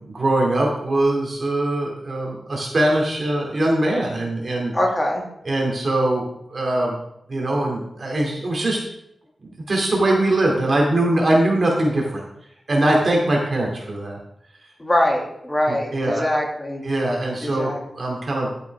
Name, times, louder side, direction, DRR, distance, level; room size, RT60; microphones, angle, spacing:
voice 1, 0.0-4.7 5.4-6.2 6.5-7.0 7.3-8.8 9.7-12.2 12.7-14.2 15.7-16.2 16.8-18.5, right 1 dB, 45° right, -2 dB, 2.5 m, -21 dB
voice 2, 4.7-5.2 14.8-16.8 17.4-17.8, left 1 dB, 20° left, 0 dB, 2.2 m, -23 dB
11.5 x 8.2 x 3.5 m, 0.78 s
wide cardioid pair, 110°, 0 cm